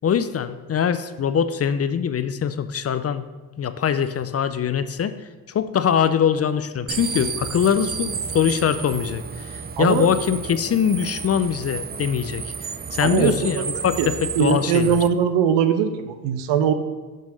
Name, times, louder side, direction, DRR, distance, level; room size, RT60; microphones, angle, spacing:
voice 1, 0.0-3.3 3.6-5.1 5.5-15.0, left 8 dB, 35° left, 12 dB, 0.5 m, -23 dB
sound 1, 6.9-15.1, right 6 dB, 25° right, 0.4 m, -32 dB
voice 2, 9.8-10.1 13.0-13.3 14.0-16.7, right 8 dB, 75° right, 10 dB, 0.8 m, -21 dB
7.6 x 3.5 x 6.2 m, 1.2 s
supercardioid pair, 55°, 43 cm